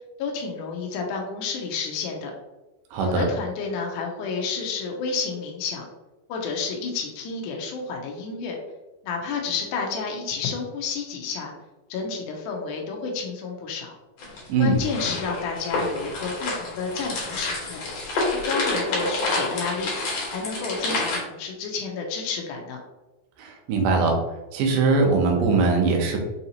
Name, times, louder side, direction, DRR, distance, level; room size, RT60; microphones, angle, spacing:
voice 1, 0.2-2.3 3.0-5.9 6.3-8.6 9.0-11.5 11.9-13.9 14.6-17.8 18.3-19.9 20.3-22.8, left 4 dB, 85° left, 0 dB, 1.8 m, -30 dB
voice 2, 2.9-3.2 14.5-14.8 23.4-24.1 24.5-26.2, right 3 dB, 75° right, 2 dB, 2.0 m, -21 dB
sound 1, 14.2-21.2, left 2 dB, 60° left, 1.9 m, -28 dB
5.7 x 2.7 x 2.8 m, 1.1 s
omnidirectional pair, 4.3 m